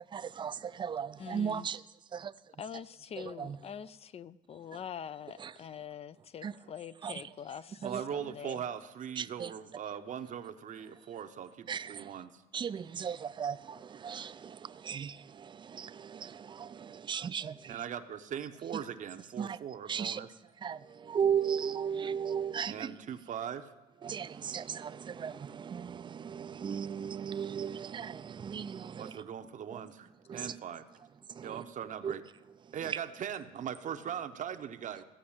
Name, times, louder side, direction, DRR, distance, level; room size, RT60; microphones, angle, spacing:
voice 1, 0.1-1.8 2.1-2.3 3.4-3.6 5.4-5.5 6.4-6.5 7.0-7.1 7.8-8.0 9.2-9.5 11.7-12.1 12.5-17.7 19.4-19.6 19.9-20.2 20.6-22.9 24.0-29.1 30.3-30.5 31.3-31.6 32.0-32.1 32.9-33.0, right 7 dB, 30° right, 0.4 m, -36 dB
voice 2, 1.2-1.7 2.6-8.6, left 8 dB, 35° left, 0.4 m, -44 dB
voice 3, 7.8-12.4 17.7-20.3 22.7-23.7 28.9-30.8 31.4-32.2 32.7-35.0, right 8 dB, 50° right, 0.8 m, -40 dB
15.0 x 5.3 x 8.7 m
cardioid pair, 110°, 17 cm